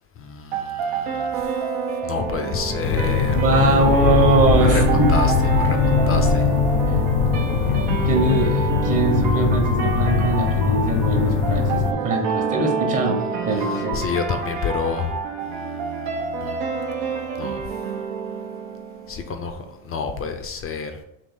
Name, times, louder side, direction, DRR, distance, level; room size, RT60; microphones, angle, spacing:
voice 1, 0.2-1.5 2.0-3.5 4.6-6.6 13.5-17.0 17.4-17.7 19.1-21.0, left 5 dB, 30° left, 6 dB, 0.4 m, -29 dB
sound 1, 0.5-19.5, right 6 dB, 80° right, 0.9 m, -27 dB
sound 2, 2.8-11.9, left 6 dB, 75° left, 0.6 m, -21 dB
voice 2, 3.3-5.1 8.0-14.0, right 2 dB, 40° right, 2 dB, 1.1 m, -21 dB
3.6 x 2.7 x 4.2 m, 0.83 s
supercardioid pair, 100°, 47 cm